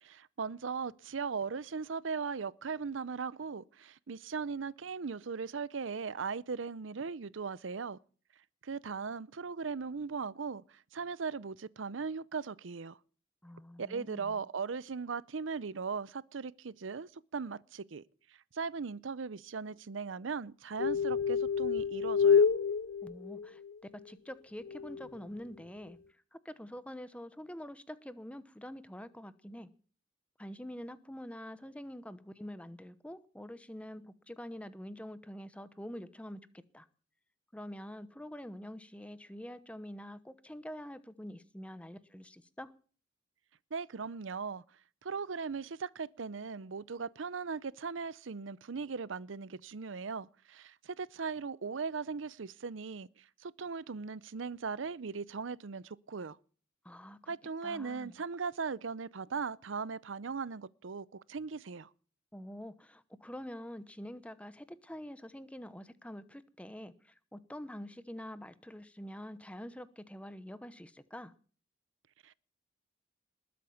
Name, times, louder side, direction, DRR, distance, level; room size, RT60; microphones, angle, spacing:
voice 1, 0.0-8.0 8.6-13.0 13.8-18.0 18.5-22.5 43.7-44.6 45.0-56.4 57.3-61.9 72.2-72.3, right 5 dB, 85° right, 0.6 m, -38 dB
voice 2, 13.4-14.5 23.0-23.6 24.0-26.0 26.3-29.7 30.4-36.4 36.7-36.9 37.5-42.7 56.8-57.3 57.6-58.2 62.3-71.3, equal, 5° left, 0.9 m, -46 dB
sound 1, 20.8-23.7 24.6-25.1, left 6 dB, 80° left, 0.6 m, -28 dB
20.5 x 8.6 x 7.1 m
head